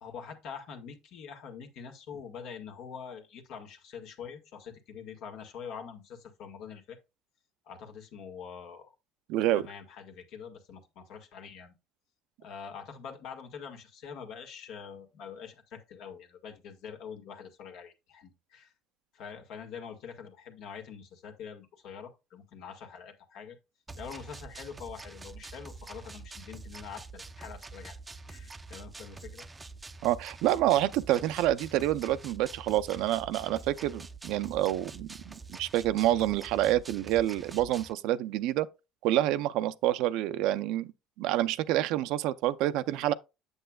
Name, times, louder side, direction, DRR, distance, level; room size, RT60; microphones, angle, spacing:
voice 1, 0.0-7.0 7.7-8.9 9.5-11.8 12.4-18.7 19.1-23.6 24.0-28.0 28.3-29.5, left 6 dB, 65° left, 1.7 m, -45 dB
voice 2, 9.3-9.7 30.0-38.7 39.0-40.9 41.2-43.1, right 14 dB, 75° right, 0.5 m, -28 dB
sound 1, 23.9-37.9, right 3 dB, 20° right, 0.5 m, -46 dB
8.0 x 7.4 x 2.3 m
cardioid pair, 110°, 0 cm